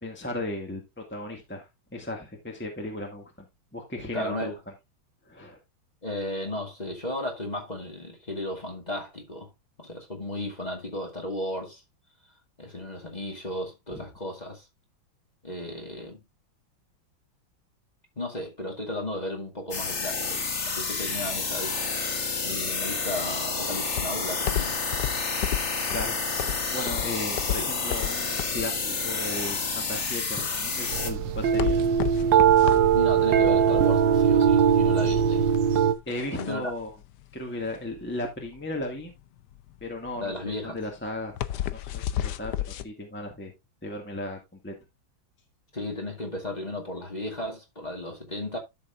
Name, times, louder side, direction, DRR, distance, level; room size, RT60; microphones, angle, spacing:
voice 1, 0.0-3.3 3.7-4.5 5.2-5.6 13.9-14.0 25.9-26.2 26.7-31.8 36.1-36.9 37.3-39.1 39.8-41.4 41.7-43.5 43.8-44.7, left 1 dB, 5° left, 1.7 m, -36 dB
voice 2, 4.1-4.6 6.0-9.5 9.8-11.8 12.6-14.7 15.4-16.2 18.2-20.4 20.8-21.8 22.4-24.8 27.6-27.7 32.9-35.5 36.4-36.7 40.2-40.8 45.7-48.6, left 1 dB, 20° left, 2.1 m, -34 dB
sound 1, 19.7-31.1, left 4 dB, 40° left, 1.6 m, -29 dB
sound 2, 23.9-42.9, left 11 dB, 70° left, 1.2 m, -33 dB
sound 3, 30.9-35.9, right 8 dB, 70° right, 1.6 m, -20 dB
12.5 x 6.5 x 2.4 m
omnidirectional pair, 2.1 m